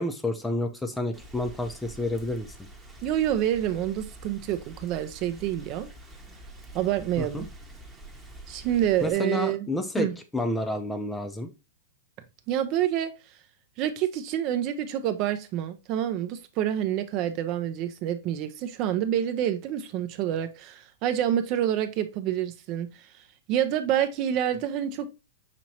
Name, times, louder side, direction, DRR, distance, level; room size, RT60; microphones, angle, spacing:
voice 1, 0.0-2.5 7.2-7.4 9.0-11.5, left 1 dB, 5° left, 0.6 m, -30 dB
Rain, 1.1-9.1, right 2 dB, 10° right, 0.9 m, -46 dB
voice 2, 3.0-5.9 6.7-7.4 8.5-9.7 10.0-10.2 12.5-13.1 13.8-23.1 23.5-25.1, right 11 dB, 40° right, 0.5 m, -27 dB
5.9 x 2.9 x 2.8 m
hypercardioid pair, 140°, 0 cm